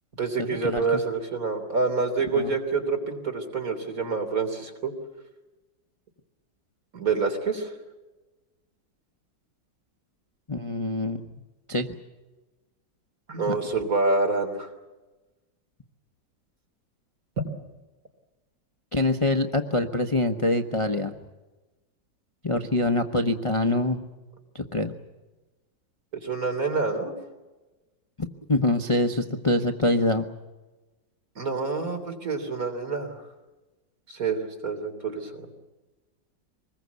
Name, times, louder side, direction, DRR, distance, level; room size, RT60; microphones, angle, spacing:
voice 1, 0.2-4.9 6.9-7.7 13.3-14.7 26.1-27.1 31.4-33.2 34.1-35.5, right 4 dB, 50° right, 4 dB, 3.7 m, -27 dB
voice 2, 10.5-11.2 11.7-11.9 13.5-13.6 18.9-21.1 22.4-24.0 24.5-24.9 28.2-30.2, left 2 dB, 25° left, 5 dB, 0.7 m, -25 dB
25.0 x 21.0 x 8.2 m, 1.1 s
omnidirectional pair, 2.0 m